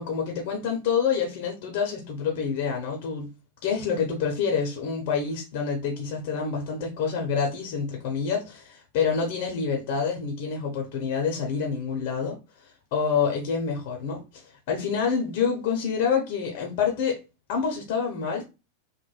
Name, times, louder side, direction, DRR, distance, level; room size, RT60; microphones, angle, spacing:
voice 1, 0.0-3.3 3.6-17.2 17.5-18.4, left 6 dB, 50° left, 0.8 m, -27 dB
3.2 x 2.1 x 2.3 m
figure-of-eight pair, 90°, 0 cm